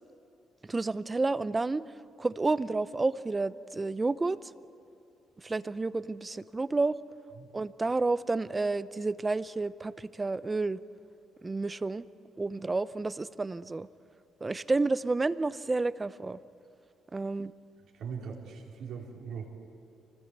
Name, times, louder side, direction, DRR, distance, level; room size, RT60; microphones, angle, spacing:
voice 1, 0.6-1.8 2.2-4.5 5.4-7.0 7.5-10.8 11.4-12.0 12.4-13.9 14.4-16.4 17.1-17.5, right 3 dB, 25° right, 16 dB, 0.6 m, -30 dB
voice 2, 17.9-19.5, right 6 dB, 80° right, -1 dB, 4.1 m, -40 dB
25.0 x 19.5 x 8.2 m, 2.7 s
cardioid pair, 90°, 0 cm